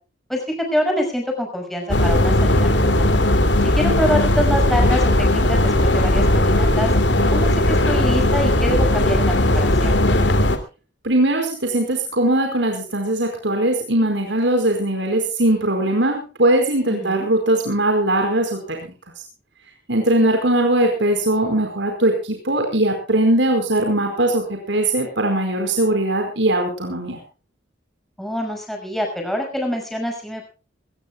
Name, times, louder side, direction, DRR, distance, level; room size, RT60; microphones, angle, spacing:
voice 1, 0.3-3.1 3.6-6.9 7.3-10.0 16.9-17.3 20.2-20.4 28.2-30.4, equal, ahead, 1 dB, 5.9 m, -25 dB
sound 1, 1.9-10.6, left 1 dB, 75° left, 2.8 m, -17 dB
voice 2, 11.0-18.9 19.9-27.2, right 1 dB, 80° right, 3 dB, 4.8 m, -20 dB
21.5 x 20.0 x 2.3 m, 0.34 s
head